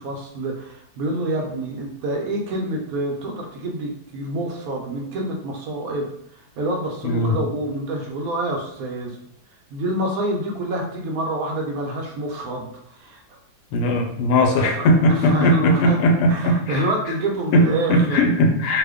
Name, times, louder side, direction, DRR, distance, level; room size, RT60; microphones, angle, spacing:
voice 1, 0.0-6.1 6.3-9.2 9.7-13.4 14.4-18.2, right 1 dB, 70° right, 1 dB, 0.9 m, -27 dB
voice 2, 7.0-7.3 13.7-16.9 17.5-18.8, left 1 dB, 80° left, 1 dB, 1.2 m, -18 dB
2.8 x 2.1 x 3.5 m, 0.73 s
omnidirectional pair, 1.7 m